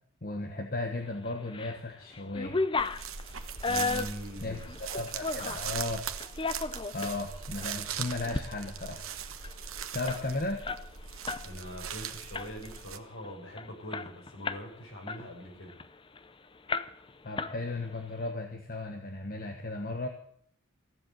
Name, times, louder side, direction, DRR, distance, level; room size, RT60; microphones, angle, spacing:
voice 1, 0.2-2.6 4.4-6.0 6.9-9.0 9.9-10.6 17.2-20.1, left 2 dB, 45° left, 4 dB, 1.4 m, -35 dB
sound 1, 1.2-1.8 2.1-5.7 6.2-7.2 7.6-7.7 8.1-8.5 8.8-8.9 9.1-11.5 11.8-12.0 12.3-12.8 13.2-13.3 13.6-14.7 15.1-16.2 16.7-17.1 17.4-18.0, left 4 dB, 25° left, 0.6 m, -34 dB
sound 2, 2.8-13.0, right 7 dB, 80° right, 1.2 m, -40 dB
voice 2, 3.7-4.8 11.4-15.8, equal, 65° left, 0 dB, 6.6 m, -43 dB
16.0 x 7.6 x 9.3 m, 0.63 s
head